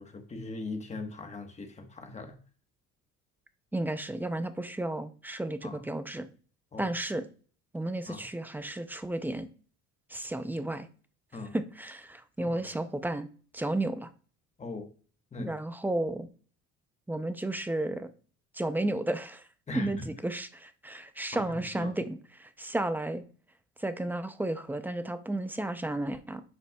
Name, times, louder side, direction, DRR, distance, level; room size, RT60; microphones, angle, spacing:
voice 1, 0.0-2.4 5.6-5.8 6.7-6.9 8.1-8.2 11.3-11.5 12.4-12.6 14.6-14.9 15.3-15.5 19.7-20.0 21.3-21.9, left 3 dB, 25° left, 1.3 m, -40 dB
voice 2, 3.7-6.3 6.8-7.3 7.7-9.5 10.1-10.9 11.5-13.3 13.5-14.1 15.4-16.3 17.1-18.1 18.5-19.5 19.7-23.2 23.8-26.4, right 1 dB, 5° right, 0.5 m, -33 dB
9.7 x 5.6 x 2.3 m
cardioid pair, 125°, 29 cm